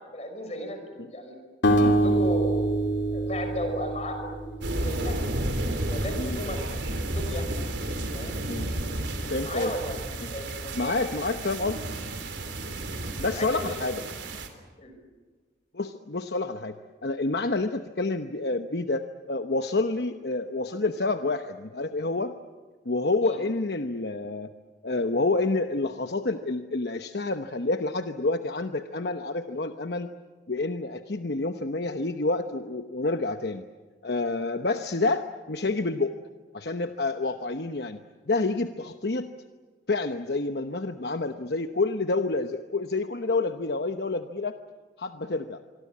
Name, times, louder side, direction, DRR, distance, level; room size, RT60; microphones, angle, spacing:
voice 1, 0.1-1.4 1.8-2.6 3.1-4.4 4.7-5.2 5.9-6.6 7.1-7.5 8.1-8.3 9.4-11.1 13.3-14.0 14.8-14.9 23.2-23.4, left 1 dB, 35° left, 6 dB, 5.6 m, -35 dB
sound 1, 1.6-4.8, right 1 dB, 85° left, 3.0 m, -24 dB
sound 2, 4.6-14.5, right 1 dB, 90° right, 3.4 m, -32 dB
voice 2, 9.3-9.7 10.2-10.3 10.7-11.8 13.2-14.0 15.7-16.7 17.0-22.4 22.8-24.5 24.8-30.1 30.5-33.6 34.0-36.2 36.5-38.0 38.3-39.3 39.9-44.6 45.0-45.6, left 3 dB, 65° left, 7 dB, 0.9 m, -28 dB
25.5 x 24.0 x 8.6 m, 1.4 s
head